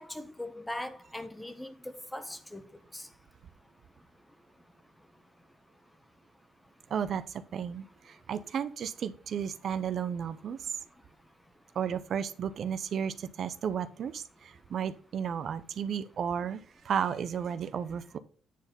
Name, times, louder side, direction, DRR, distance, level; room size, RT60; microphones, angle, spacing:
voice 1, 0.0-1.7 2.1-2.6 2.9-3.0, left 1 dB, 10° left, 1.2 m, -40 dB
voice 2, 6.9-10.8 11.7-18.2, right 8 dB, 60° right, 0.7 m, -33 dB
9.3 x 4.2 x 5.4 m
cardioid pair, 90°, 0 cm